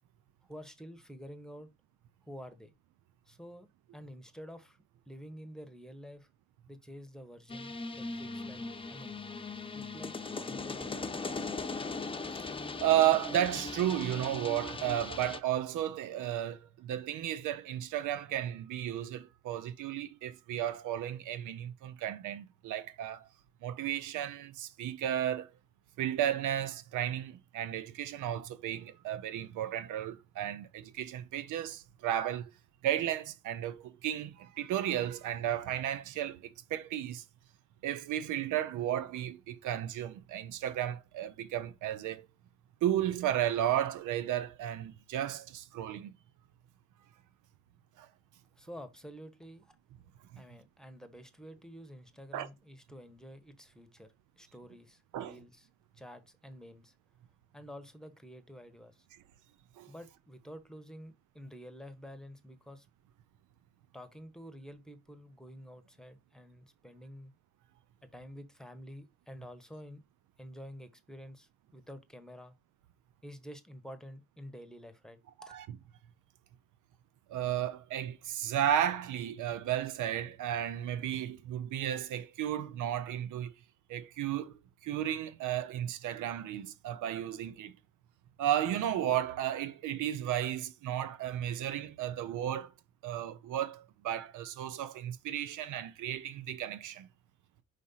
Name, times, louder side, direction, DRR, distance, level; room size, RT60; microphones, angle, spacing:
voice 1, 0.4-1.7 2.2-2.7 3.3-3.7 3.9-4.8 5.1-6.3 6.7-8.6 8.9-9.2 9.7-10.9 48.6-49.8 50.4-54.1 54.4-55.7 55.9-56.9 57.5-59.1 59.9-62.9 63.9-67.3 68.1-70.0 70.4-72.6 73.2-75.5, equal, ahead, 1.2 m, -49 dB
sound 1, 7.5-15.4, left 3 dB, 20° left, 0.8 m, -39 dB
voice 2, 12.8-23.3 23.6-25.5 26.0-32.5 32.8-37.2 37.8-42.3 42.8-46.1 48.0-48.1 50.3-50.4 52.3-52.5 55.1-55.4 59.8-59.9 75.4-75.7 77.3-83.5 83.9-87.7 88.4-92.7 93.0-97.1, right 11 dB, 85° right, 0.8 m, -33 dB
5.3 x 3.3 x 5.6 m
cardioid pair, 90°, 30 cm